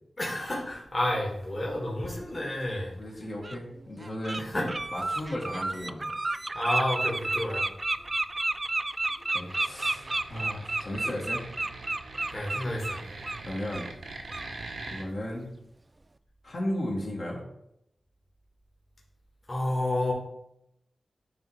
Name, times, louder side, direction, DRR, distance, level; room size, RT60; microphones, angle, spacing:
voice 1, 0.2-2.9 4.4-4.7 6.5-7.7 12.3-13.0 19.5-20.1, left 1 dB, 30° left, -3 dB, 1.8 m, -30 dB
Bird, 2.6-2.7 3.4-3.6 4.0-4.4 4.7-13.4 13.7-13.9 14.3-14.5, right 2 dB, 30° right, 0.3 m, -31 dB
voice 2, 3.0-4.5 4.9-6.1 9.3-11.4 13.4-13.9 14.9-15.5 16.4-17.4, left 1 dB, 50° left, -3 dB, 1.9 m, -35 dB
sound 1, 9.4-15.0, right 3 dB, 85° right, 1.1 m, -43 dB
9.1 x 3.1 x 4.9 m, 0.79 s
wide cardioid pair, 80°, 0 cm